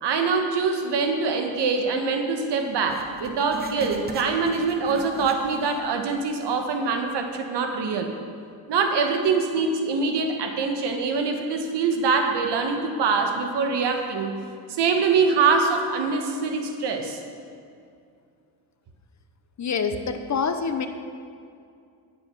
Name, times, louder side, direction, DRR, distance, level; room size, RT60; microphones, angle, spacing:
voice 1, 0.0-8.1 8.7-14.4 14.7-17.2, right 4 dB, 60° right, 5 dB, 1.5 m, -24 dB
Writing, 2.9-5.9 6.2-6.3 7.0-7.1, right 1 dB, 20° right, 1.3 m, -40 dB
voice 2, 19.6-20.9, left 5 dB, 35° left, 8 dB, 0.8 m, -26 dB
9.8 x 7.8 x 6.1 m, 2.4 s
supercardioid pair, 75°, 47 cm